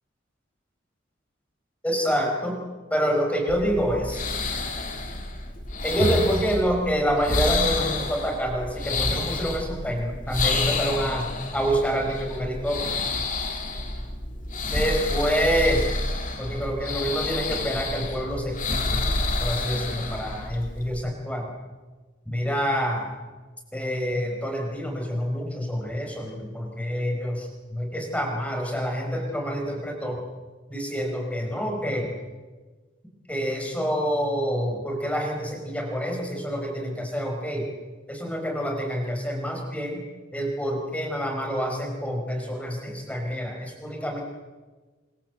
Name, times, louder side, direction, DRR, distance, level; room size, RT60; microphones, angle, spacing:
voice 1, 1.8-2.6 2.9-4.2 5.8-13.2 14.7-15.8 16.4-19.1 19.4-21.5 22.2-23.1 23.7-30.2 30.7-32.1 33.3-37.7 38.1-40.0 40.3-44.2, equal, 5° left, 2 dB, 5.0 m, -27 dB
sound 1, 3.5-21.0, left 3 dB, 40° left, 2.9 m, -29 dB
25.0 x 23.0 x 8.0 m, 1.3 s
head